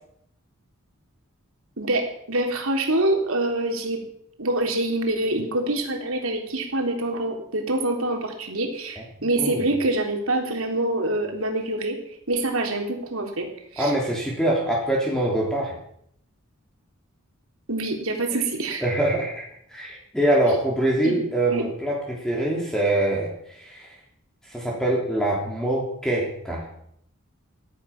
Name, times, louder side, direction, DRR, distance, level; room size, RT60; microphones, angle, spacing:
voice 1, 1.8-4.0 4.4-12.0 12.3-13.9 17.7-18.8 21.0-21.2 21.5-21.7, right 2 dB, 90° right, 2 dB, 3.5 m, -25 dB
voice 2, 13.8-15.8 18.8-19.5 19.7-23.9 24.5-26.6, right 1 dB, 5° left, -3 dB, 3.3 m, -24 dB
18.0 x 12.0 x 6.0 m, 0.71 s
head